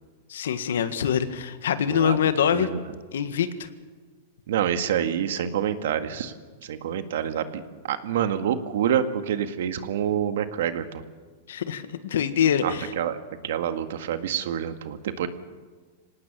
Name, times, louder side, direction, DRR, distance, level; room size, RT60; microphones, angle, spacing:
voice 1, 0.3-2.7 3.1-3.7 11.5-12.9, left 8 dB, 85° left, 11 dB, 1.7 m, -24 dB
voice 2, 4.5-6.3 6.6-7.6 7.9-11.0 12.6-13.2 13.4-15.3, right 9 dB, 75° right, 9 dB, 1.8 m, -27 dB
26.0 x 18.5 x 7.1 m, 1.4 s
supercardioid pair, 150°, 0 cm